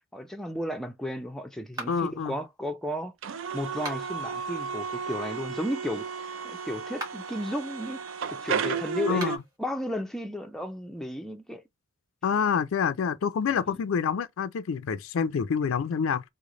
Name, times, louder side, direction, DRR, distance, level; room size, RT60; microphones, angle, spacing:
voice 1, 0.1-3.1 3.5-11.6 13.7-13.8, left 1 dB, ahead, 0.4 m, -34 dB
sound 1, 1.7-2.2 3.7-4.3 6.8-7.4 9.1-9.6, right 2 dB, 20° right, 1.3 m, -40 dB
voice 2, 1.9-2.3 9.1-9.4 12.2-16.2, left 6 dB, 70° left, 0.4 m, -27 dB
sound 2, 3.2-9.4, right 6 dB, 70° right, 0.4 m, -33 dB
3.1 x 2.1 x 3.7 m
head